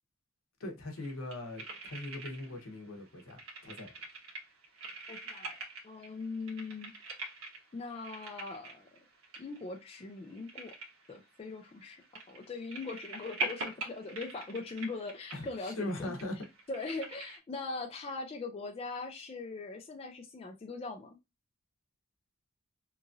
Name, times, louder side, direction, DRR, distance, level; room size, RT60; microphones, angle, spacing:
voice 1, 0.6-3.9 15.3-16.4, left 1 dB, 70° left, 0.8 m, -40 dB
sound 1, 1.0-2.7 3.0-17.4, right 2 dB, 75° right, 1.0 m, -44 dB
voice 2, 5.1-5.6 5.8-6.9 7.7-8.9 9.4-10.8 11.1-12.0 12.3-16.1 16.7-21.2, left 3 dB, 30° left, 0.3 m, -41 dB
2.9 x 2.5 x 2.4 m
head